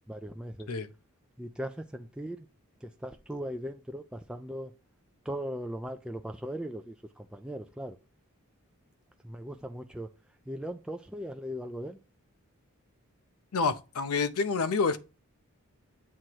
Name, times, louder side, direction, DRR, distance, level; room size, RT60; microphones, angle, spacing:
voice 1, 0.1-0.7 1.4-2.5 2.8-4.7 5.3-8.0 9.2-10.1 10.5-12.0, equal, 5° right, 0.3 m, -38 dB
voice 2, 13.5-15.0, left 4 dB, 80° left, 0.6 m, -28 dB
7.6 x 2.9 x 4.5 m
head